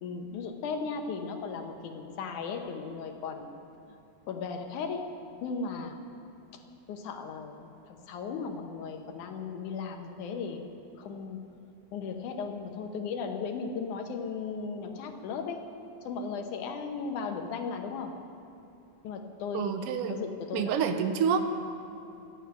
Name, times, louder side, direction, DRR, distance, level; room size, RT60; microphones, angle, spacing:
voice 1, 0.0-3.5 4.3-5.1 5.4-6.0 6.9-10.6 11.0-11.4 11.9-15.6 16.0-18.2 19.0-19.8 20.1-20.7 21.0-21.1, left 5 dB, 85° left, 5 dB, 2.5 m, -36 dB
voice 2, 19.5-20.2 20.5-21.4, right 7 dB, 85° right, 8 dB, 1.3 m, -27 dB
12.5 x 9.1 x 9.1 m, 2.7 s
omnidirectional pair, 3.4 m